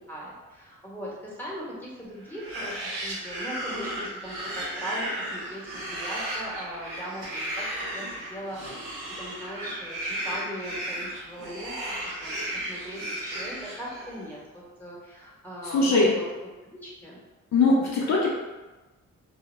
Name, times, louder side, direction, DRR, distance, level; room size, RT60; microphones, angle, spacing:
voice 1, 0.0-16.2 16.6-17.2, equal, 5° left, -5 dB, 1.0 m, -39 dB
sound 1, 2.3-14.3, right 1 dB, 90° right, 0.7 m, -35 dB
voice 2, 15.6-16.1 17.5-18.4, left 3 dB, 60° left, -4 dB, 0.6 m, -21 dB
2.2 x 2.0 x 3.2 m, 1.2 s
supercardioid pair, 50°, 32 cm